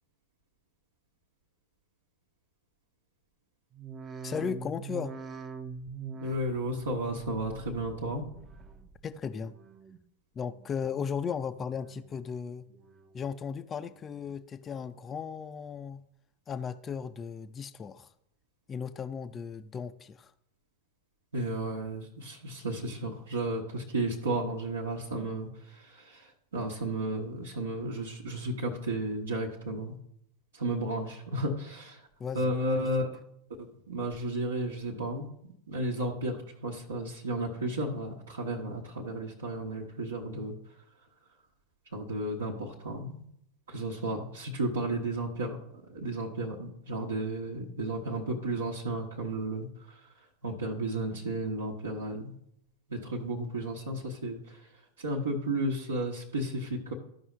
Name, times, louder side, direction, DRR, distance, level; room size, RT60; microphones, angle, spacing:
sound 1, 3.7-9.1 9.4-10.0 10.5-11.1 11.6-12.2 12.6-13.3 13.8-14.3 14.9-15.0, right 5 dB, 20° right, 0.6 m, -45 dB
voice 1, 4.2-5.2 9.0-9.5 10.4-12.7 13.1-16.0 16.5-18.1 18.7-20.3 32.2-32.9, left 6 dB, 20° left, 10 dB, 0.4 m, -36 dB
voice 2, 6.2-8.2 21.3-30.0 30.5-32.0 32.3-33.1 33.6-35.3 35.7-40.5 41.9-43.2 43.7-45.6 45.9-50.1 50.4-52.3 52.9-54.7 55.0-56.9, right 1 dB, 70° right, -2 dB, 1.1 m, -33 dB
13.5 x 5.3 x 3.2 m, 0.74 s
figure-of-eight pair, 90°, 0 cm